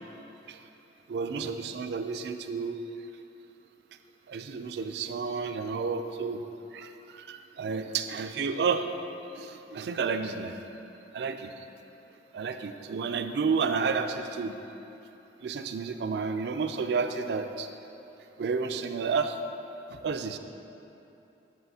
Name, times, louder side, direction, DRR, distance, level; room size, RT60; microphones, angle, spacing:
voice 1, 1.1-2.8 4.3-6.4 6.7-8.9 9.4-10.6 11.1-11.5 12.3-14.5 15.4-17.7 18.4-19.4 20.0-20.4, right 5 dB, 65° right, 8 dB, 0.3 m, -31 dB
7.8 x 7.5 x 2.7 m, 2.9 s
head